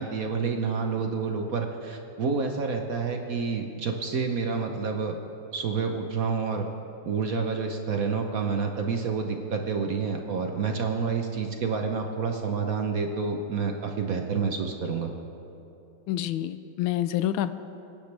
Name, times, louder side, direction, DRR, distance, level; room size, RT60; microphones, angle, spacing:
voice 1, 0.0-5.1 5.5-6.7 7.0-15.1, right 5 dB, 55° right, 4 dB, 1.0 m, -28 dB
voice 2, 16.1-17.6, left 12 dB, 80° left, 12 dB, 1.3 m, -28 dB
25.0 x 10.5 x 3.4 m, 2.8 s
omnidirectional pair, 2.3 m